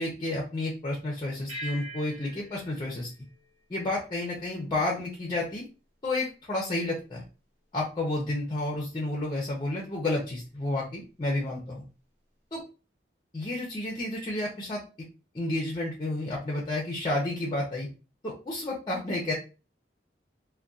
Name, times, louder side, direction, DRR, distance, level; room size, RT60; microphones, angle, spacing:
voice 1, 0.0-3.1 3.7-5.7 6.0-7.2 7.7-11.8 12.5-12.6 13.3-14.8 15.3-17.9 18.2-19.3, left 2 dB, 25° left, -2 dB, 0.5 m, -31 dB
sound 1, 1.5-4.3, equal, 45° right, 0.8 m, -44 dB
2.6 x 2.2 x 2.3 m, 0.32 s
head